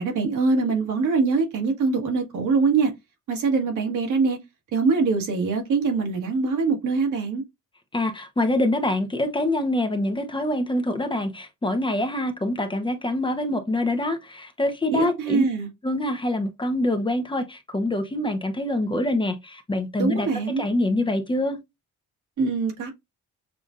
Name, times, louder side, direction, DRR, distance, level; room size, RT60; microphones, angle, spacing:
voice 1, 0.0-2.9 3.3-4.4 4.7-7.4 14.9-15.7 20.0-20.6 22.4-22.9, right 4 dB, 80° right, 1.7 m, -23 dB
voice 2, 7.9-15.4 15.8-20.3 20.6-21.6, left 1 dB, 15° left, 0.8 m, -25 dB
6.8 x 2.6 x 2.4 m
cardioid pair, 90°, 30 cm